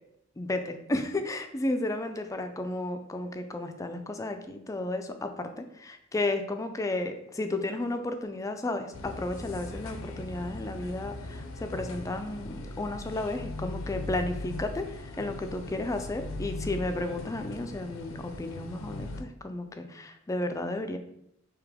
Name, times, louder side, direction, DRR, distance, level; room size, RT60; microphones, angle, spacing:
voice 1, 0.4-21.0, left 2 dB, 15° left, 7 dB, 0.3 m, -33 dB
sound 1, 8.9-19.2, left 2 dB, 90° left, 0.5 m, -39 dB
3.3 x 2.9 x 3.5 m, 0.74 s
head